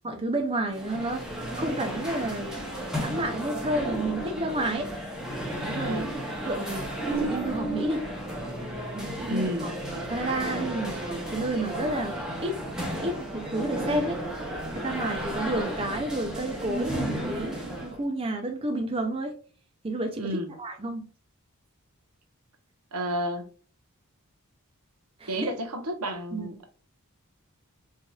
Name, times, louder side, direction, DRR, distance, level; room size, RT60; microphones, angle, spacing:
voice 1, 0.0-2.6 3.0-4.9 5.6-6.9 7.2-8.0 8.9-9.7 10.0-12.6 13.0-14.2 14.7-19.4 19.8-21.1 25.2-25.5 26.3-26.5, right 1 dB, 25° right, 4 dB, 0.5 m, -31 dB
sound 1, 0.7-18.0, right 1 dB, 5° right, 0.9 m, -33 dB
voice 2, 5.8-6.1 9.3-9.7 20.2-20.5 22.9-23.5 25.3-26.7, right 1 dB, 80° right, 5 dB, 0.9 m, -31 dB
4.6 x 2.8 x 2.3 m, 0.40 s
head